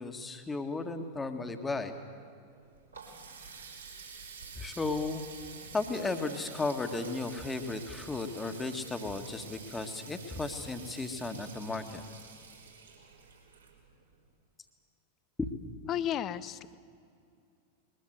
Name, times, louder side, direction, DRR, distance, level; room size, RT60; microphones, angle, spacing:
voice 1, 0.0-1.9 4.6-5.3 5.7-12.0 15.4-15.5, left 3 dB, 10° left, 7 dB, 1.8 m, -35 dB
Water tap faucet, 2.5-14.2, right 5 dB, 75° right, 4.0 m, -49 dB
voice 2, 15.8-16.7, left 10 dB, 30° left, 16 dB, 0.8 m, -33 dB
21.5 x 21.5 x 8.0 m, 2.4 s
figure-of-eight pair, 90°, 0 cm